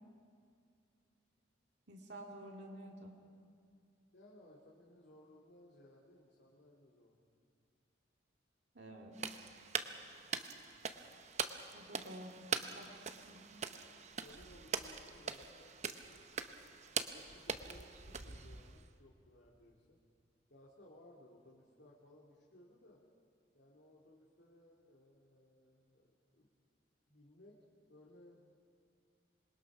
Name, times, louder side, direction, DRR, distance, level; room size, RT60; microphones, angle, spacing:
voice 1, 1.9-3.1 8.7-9.5 11.7-12.5 12.7-13.5, right 1 dB, 65° right, 0 dB, 2.3 m, -51 dB
voice 2, 4.1-7.2 14.2-16.3 17.1-20.0 20.5-23.0 23.5-26.1 26.3-26.5 27.1-27.6 27.9-28.4, left 1 dB, 60° left, -4 dB, 2.4 m, -61 dB
sound 1, 9.1-18.9, right 6 dB, 35° right, 0.8 m, -43 dB
26.5 x 22.0 x 6.0 m, 2.3 s
head